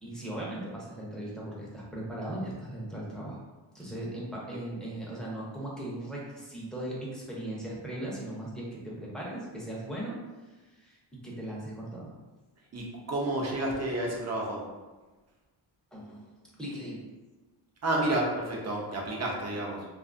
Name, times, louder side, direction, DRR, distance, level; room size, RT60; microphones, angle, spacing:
voice 1, 0.0-3.4 3.7-10.2 10.5-12.1 15.9-17.0, right 1 dB, ahead, -6 dB, 0.6 m, -38 dB
voice 2, 12.7-14.6 17.8-19.8, right 1 dB, 35° right, -2 dB, 0.6 m, -30 dB
2.5 x 2.4 x 2.5 m, 1.2 s
cardioid pair, 95°, 48 cm